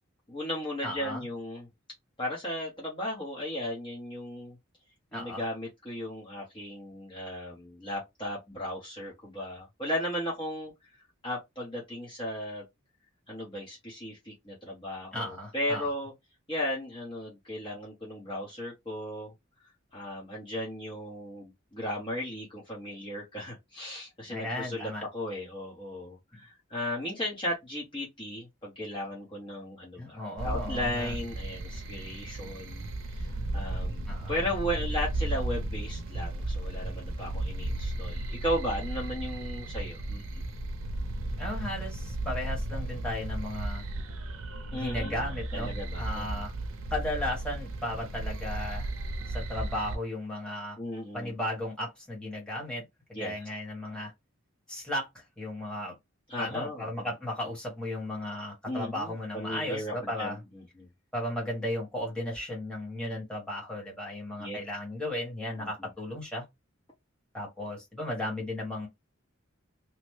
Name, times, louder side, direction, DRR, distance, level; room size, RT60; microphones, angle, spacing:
voice 1, 0.3-1.7 2.2-4.6 5.1-10.7 11.2-12.6 13.3-16.1 16.5-19.3 19.9-40.4 44.7-45.2 45.5-46.4 50.8-51.3 53.1-53.3 56.3-57.1 58.7-60.9 64.4-64.6 65.6-65.7, left 1 dB, 25° left, 1.0 m, -36 dB
voice 2, 0.8-1.2 5.1-5.4 15.1-15.9 24.3-25.1 30.0-31.1 34.1-34.4 41.4-43.8 44.7-46.5 46.9-48.9 49.3-50.8 51.1-52.8 53.1-54.1 54.7-55.9 56.4-60.4 61.1-66.4 67.3-68.9, left 1 dB, 5° left, 1.4 m, -35 dB
sound 1, 30.4-50.0, right 1 dB, 85° right, 0.6 m, -35 dB
2.9 x 2.1 x 3.1 m
head